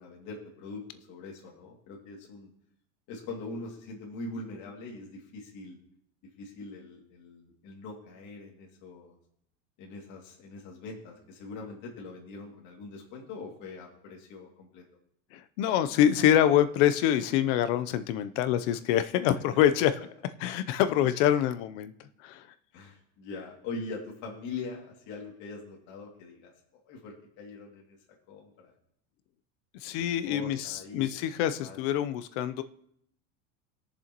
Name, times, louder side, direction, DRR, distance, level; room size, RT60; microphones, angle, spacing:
voice 1, 0.0-2.5 3.1-5.8 6.4-9.2 9.8-14.8 19.5-19.6 22.7-28.0 28.3-28.7 30.0-31.1 31.6-31.8, left 3 dB, 45° left, -1 dB, 2.5 m, -42 dB
voice 2, 15.3-19.9 20.4-21.9 22.2-22.5 29.8-32.6, left 11 dB, 65° left, 12 dB, 0.8 m, -25 dB
21.0 x 7.0 x 3.0 m, 0.70 s
cardioid pair, 160°, 39 cm